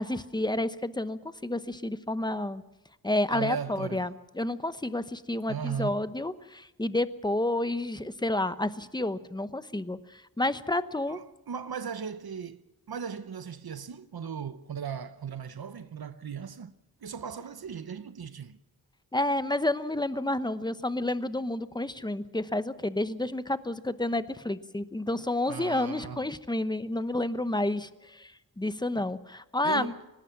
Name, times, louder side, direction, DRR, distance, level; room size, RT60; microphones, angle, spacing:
voice 1, 0.0-2.6 3.0-11.2 19.1-28.3 28.6-29.9, left 1 dB, 10° left, 0.9 m, -30 dB
voice 2, 3.3-4.1 5.5-6.0 11.1-12.6 12.9-16.7 17.0-18.6 25.5-26.3 29.0-29.1 29.6-30.0, right 7 dB, 85° right, 0.9 m, -37 dB
23.5 x 19.5 x 5.9 m
wide cardioid pair, 90°, 37 cm